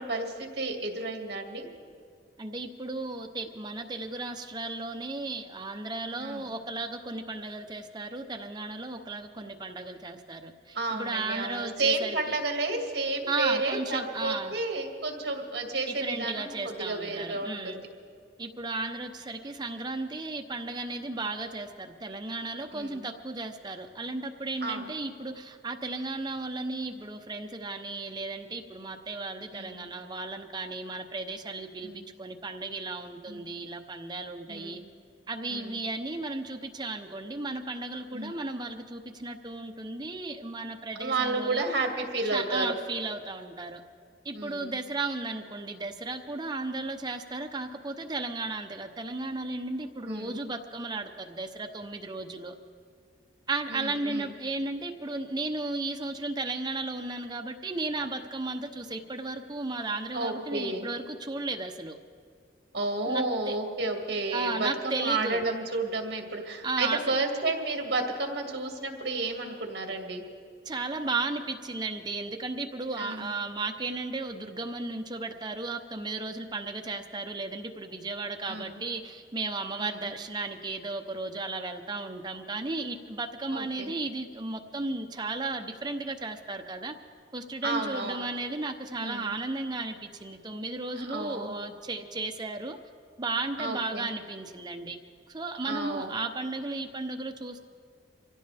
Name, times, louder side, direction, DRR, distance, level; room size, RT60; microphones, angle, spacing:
voice 1, 0.0-1.6 6.2-6.5 10.7-17.9 22.7-23.1 24.6-24.9 29.5-29.8 31.8-32.1 33.3-33.5 34.5-34.8 35.5-35.8 38.1-38.3 41.0-42.7 44.3-44.8 50.0-50.4 53.7-54.3 60.1-60.9 62.7-70.2 73.0-73.4 78.5-78.8 79.8-80.1 83.5-83.9 87.6-88.3 89.0-89.4 91.0-91.6 93.6-94.1 95.6-96.1, right 2 dB, 60° right, 2 dB, 2.1 m, -31 dB
voice 2, 2.4-12.4 13.3-14.6 15.9-17.8 18.4-34.8 35.3-41.6 42.3-43.8 44.2-52.5 53.5-62.0 63.1-63.6 64.3-65.4 66.6-67.0 70.7-86.9 87.3-92.8 93.2-95.0 95.3-97.6, right 3 dB, 25° right, 5 dB, 0.8 m, -35 dB
25.0 x 16.0 x 3.4 m, 2.1 s
head